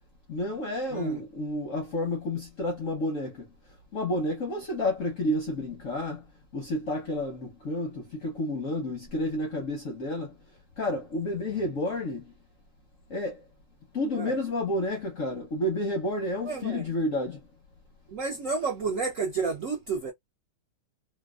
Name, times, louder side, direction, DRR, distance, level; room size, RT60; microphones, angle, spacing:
voice 1, 0.3-3.5 3.9-6.2 6.5-10.3 10.8-12.3 13.1-13.4 13.9-17.4, left 1 dB, 60° left, 0.9 m, -30 dB
voice 2, 16.4-16.9 18.1-20.1, right 4 dB, 70° right, 0.7 m, -31 dB
3.3 x 2.2 x 2.3 m
omnidirectional pair, 2.3 m